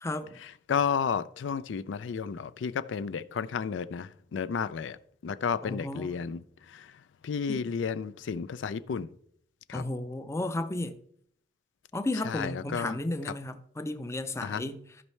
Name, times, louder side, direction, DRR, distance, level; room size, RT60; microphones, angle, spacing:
voice 1, 0.7-5.0 5.2-6.4 6.7-6.9 7.2-9.1 9.7-9.8 12.3-13.0 13.3-13.4 14.4-14.6, left 6 dB, 80° left, 0.4 m, -32 dB
voice 2, 5.6-6.2 7.5-7.7 9.7-11.0 11.9-14.8, left 2 dB, 15° left, 0.5 m, -33 dB
14.0 x 5.4 x 3.2 m
head